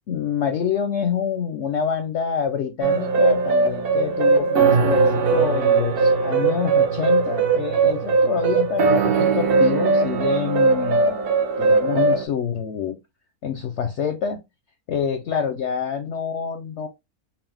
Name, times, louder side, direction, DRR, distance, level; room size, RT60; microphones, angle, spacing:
voice 1, 0.1-11.3 11.6-13.0 13.4-14.4 14.9-16.9, left 7 dB, 60° left, 0.8 m, -26 dB
sound 1, 2.8-12.2, right 4 dB, 60° right, 0.6 m, -19 dB
4.1 x 2.4 x 3.4 m
omnidirectional pair, 1.6 m